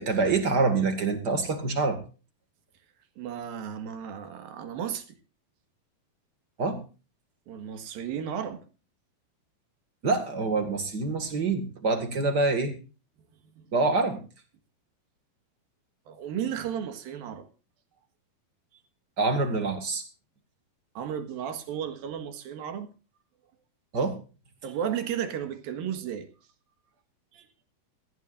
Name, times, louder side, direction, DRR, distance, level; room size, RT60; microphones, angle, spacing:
voice 1, 0.0-2.0 6.6-6.8 10.0-12.7 13.7-14.2 19.2-20.0 23.9-24.2, right 3 dB, 35° right, 1.9 m, -26 dB
voice 2, 3.2-5.0 7.5-8.6 13.5-13.6 16.1-17.5 20.9-22.9 24.6-26.3 27.3-27.5, right 8 dB, 70° right, 3.3 m, -34 dB
19.5 x 15.0 x 2.6 m
omnidirectional pair, 4.4 m